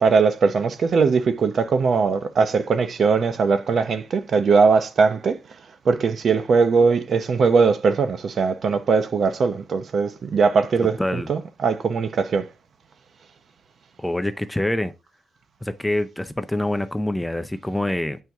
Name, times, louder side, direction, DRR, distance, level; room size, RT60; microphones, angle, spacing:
voice 1, 0.0-5.4 5.8-12.5, right 5 dB, 50° right, 0.7 m, -20 dB
voice 2, 10.8-11.3 14.0-14.9 15.6-18.2, left 1 dB, 5° left, 0.4 m, -25 dB
7.9 x 4.5 x 3.5 m
wide cardioid pair, 155°, 0 cm